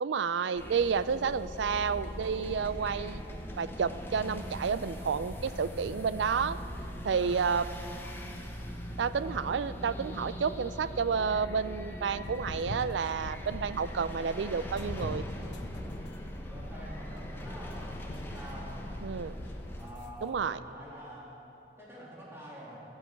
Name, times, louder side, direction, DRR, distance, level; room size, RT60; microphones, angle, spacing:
voice 1, 0.0-3.2 3.6-6.6 7.0-7.7 9.0-15.2 19.0-19.3 20.2-20.6, right 6 dB, 80° right, 15 dB, 0.4 m, -30 dB
sound 1, 0.6-19.9, equal, 15° left, 0.9 m, -41 dB
voice 2, 7.0-7.4 16.5-18.8 19.8-21.3 21.8-22.8, equal, 15° right, -6 dB, 3.0 m, -47 dB
sound 2, 12.1-13.9 14.6-20.1, left 1 dB, 80° left, 0.9 m, -43 dB
12.5 x 8.4 x 8.2 m, 2.9 s
head